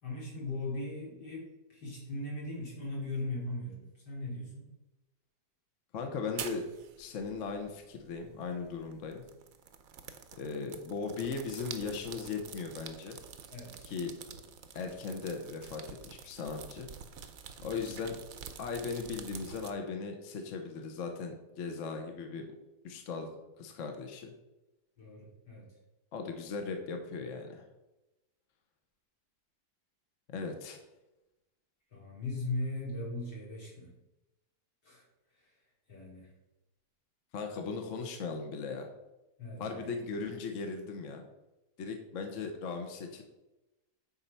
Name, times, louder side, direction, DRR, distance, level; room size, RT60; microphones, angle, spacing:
voice 1, 0.0-4.7 13.5-13.8 17.5-17.7 25.0-25.7 31.9-33.9 34.8-35.0 35.9-36.3 39.4-39.8, left 2 dB, 85° left, -5 dB, 3.9 m, -39 dB
voice 2, 5.9-6.7 7.0-9.2 10.3-13.2 13.8-14.2 14.7-16.9 17.6-18.2 18.6-22.5 22.8-23.3 23.6-24.3 26.1-27.6 30.3-30.8 37.3-38.9 39.6-41.2 41.8-43.2, left 4 dB, 55° left, 4 dB, 1.2 m, -38 dB
sound 1, 6.2-19.7, right 7 dB, 60° right, 1.1 m, -48 dB
9.1 x 4.3 x 5.5 m, 0.99 s
omnidirectional pair, 1.8 m